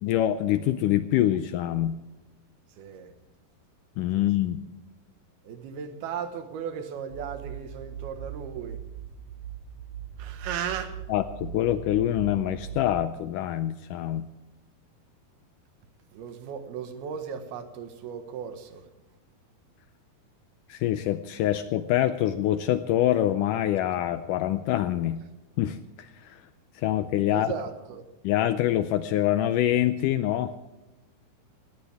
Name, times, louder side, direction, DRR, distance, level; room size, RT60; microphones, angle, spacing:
voice 1, 0.0-2.0 4.0-4.6 11.1-14.3 20.7-25.2 25.6-26.4 26.7-27.5 28.2-30.5, left 12 dB, 85° left, 11 dB, 1.8 m, -25 dB
voice 2, 2.8-3.1 4.2-4.3 5.4-8.8 10.2-10.9 16.1-18.8 27.3-28.0, right 7 dB, 90° right, 8 dB, 3.2 m, -36 dB
sound 1, 7.1-13.1, right 10 dB, 70° right, 1.4 m, -40 dB
20.0 x 17.0 x 3.5 m, 1.1 s
omnidirectional pair, 4.4 m